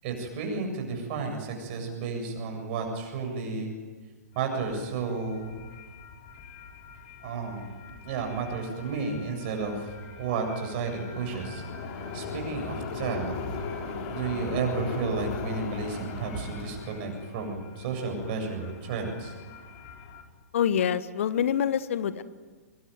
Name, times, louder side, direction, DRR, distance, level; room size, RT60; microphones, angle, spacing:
voice 1, 0.0-3.7 4.3-5.6 7.2-7.8 8.0-11.6 12.1-13.7 14.1-19.3, right 4 dB, 40° right, 4 dB, 7.6 m, -32 dB
sound 1, 4.4-20.2, left 5 dB, 35° left, 4.4 m, -40 dB
voice 2, 20.5-22.2, left 8 dB, 55° left, 14 dB, 1.3 m, -26 dB
25.0 x 23.5 x 9.3 m, 1.4 s
figure-of-eight pair, 115°, 9 cm